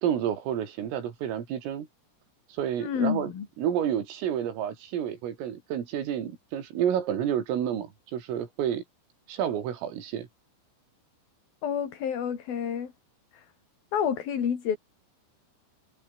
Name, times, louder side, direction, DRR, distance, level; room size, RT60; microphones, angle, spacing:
voice 1, 0.0-1.9 2.5-3.3 3.6-8.8 9.3-10.3, right 9 dB, 90° right, 5.8 m, -30 dB
voice 2, 2.8-3.5 11.6-12.9 13.3-13.4 13.9-14.8, left 8 dB, 50° left, 4.7 m, -29 dB
omnidirectional pair, 5.7 m